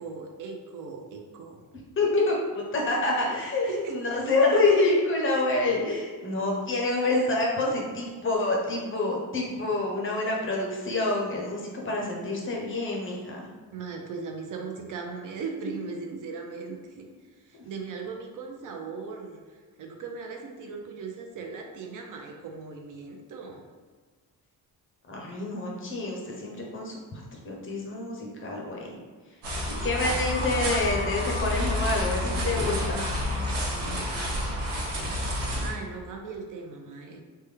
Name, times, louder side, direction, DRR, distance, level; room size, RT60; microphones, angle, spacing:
voice 1, 0.0-1.6 3.7-4.2 13.7-17.1 17.4-23.7 33.6-34.4 35.6-37.2, right 4 dB, 55° right, 2 dB, 0.5 m, -38 dB
voice 2, 2.0-13.5 25.1-29.0 29.7-33.0, left 2 dB, 35° left, -1 dB, 0.5 m, -27 dB
sound 1, 29.4-35.7, left 1 dB, 80° right, 1.0 m, -29 dB
3.3 x 2.1 x 3.1 m, 1.5 s
cardioid pair, 170°, 38 cm